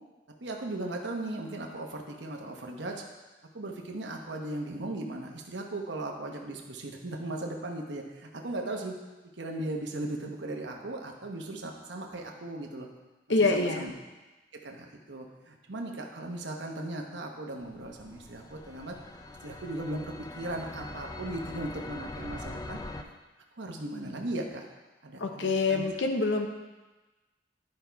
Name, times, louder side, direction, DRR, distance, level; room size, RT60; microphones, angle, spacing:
voice 1, 0.4-3.0 3.5-8.9 9.4-12.9 13.4-13.9 14.6-19.0 19.4-22.8 23.6-24.6 25.0-25.8, right 2 dB, 75° right, 1 dB, 1.1 m, -37 dB
voice 2, 13.3-13.9 25.2-26.5, left 3 dB, 80° left, 4 dB, 0.9 m, -26 dB
sound 1, 17.6-23.0, left 2 dB, 20° left, 0.5 m, -42 dB
10.5 x 5.4 x 4.6 m, 1.2 s
head